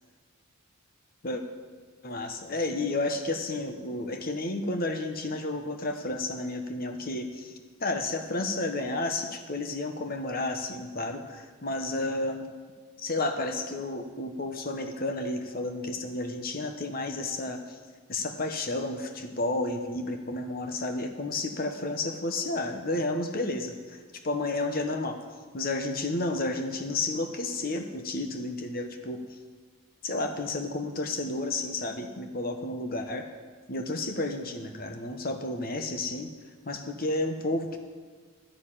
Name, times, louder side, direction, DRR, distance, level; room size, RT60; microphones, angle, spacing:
voice 1, 2.0-7.5 7.8-12.5 13.0-17.8 18.1-24.0 24.2-25.2 25.5-29.2 30.0-33.3 33.7-36.3 36.7-37.8, left 2 dB, 40° left, 6 dB, 1.0 m, -31 dB
12.5 x 6.6 x 8.8 m, 1.5 s
head